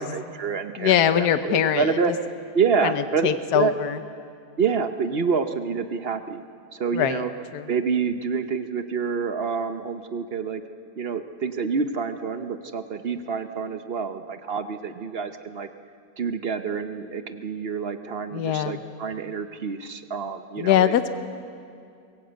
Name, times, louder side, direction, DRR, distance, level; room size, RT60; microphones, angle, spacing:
voice 1, 0.0-2.1 2.5-3.7 4.6-6.4 6.7-7.3 7.7-10.6 11.0-15.7 16.2-21.0, right 5 dB, 50° right, 9 dB, 0.8 m, -27 dB
voice 2, 0.8-1.9 2.8-4.0 6.9-7.2 7.5-7.7 18.3-18.8 20.6-21.1, left 10 dB, 70° left, 10 dB, 1.4 m, -22 dB
23.0 x 16.5 x 8.0 m, 2.4 s
omnidirectional pair, 1.8 m